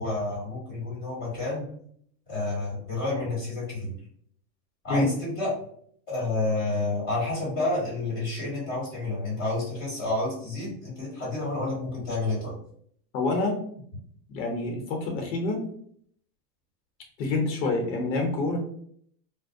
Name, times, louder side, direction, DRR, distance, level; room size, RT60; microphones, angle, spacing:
voice 1, 0.0-1.7 2.3-3.9 4.8-5.5 6.1-12.6, left 2 dB, 20° left, -7 dB, 1.5 m, -29 dB
voice 2, 13.1-13.6 14.3-15.6 17.2-18.6, left 2 dB, 90° left, 2 dB, 0.8 m, -27 dB
2.4 x 2.0 x 2.5 m, 0.64 s
supercardioid pair, 160°, 50 cm